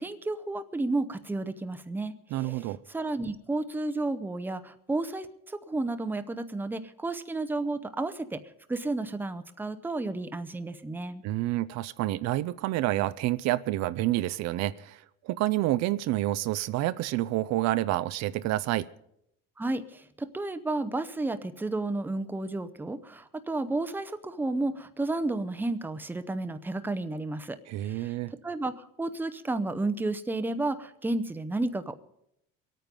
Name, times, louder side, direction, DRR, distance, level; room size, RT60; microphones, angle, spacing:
voice 1, 0.0-8.4 8.7-11.2 19.6-28.1 28.4-31.9, right 2 dB, 5° right, 11 dB, 0.7 m, -32 dB
voice 2, 2.3-2.8 11.2-18.9 27.7-28.3, right 16 dB, 60° right, 15 dB, 0.5 m, -28 dB
23.0 x 9.1 x 5.3 m, 0.77 s
cardioid pair, 125°, 31 cm